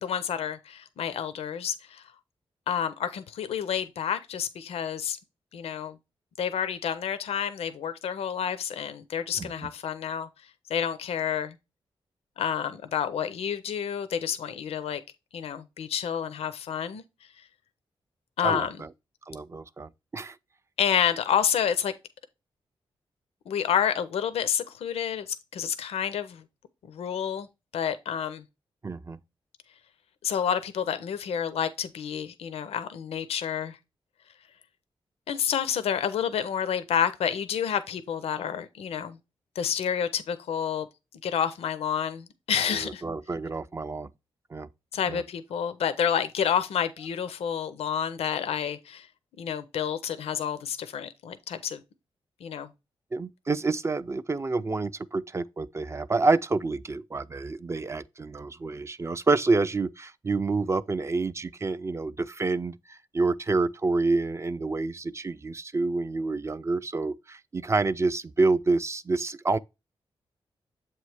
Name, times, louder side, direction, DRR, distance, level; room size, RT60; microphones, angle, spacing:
voice 1, 0.0-2.0 2.7-5.2 5.5-6.0 6.4-10.3 10.7-11.6 12.4-15.0 15.3-17.0 18.4-18.8 20.8-21.9 23.5-26.4 26.8-27.5 27.7-28.4 30.2-33.8 35.3-39.2 39.6-40.9 41.2-43.0 44.9-49.1 49.4-51.8 52.4-52.7, left 8 dB, 90° left, 0.5 m, -29 dB
voice 2, 9.4-9.7 18.4-18.9 19.3-20.4 28.8-29.2 42.6-44.1 44.5-44.7 45.1-45.2 53.1-69.6, right 3 dB, 30° right, 0.4 m, -28 dB
7.4 x 3.1 x 4.7 m
cardioid pair, 80°, 10 cm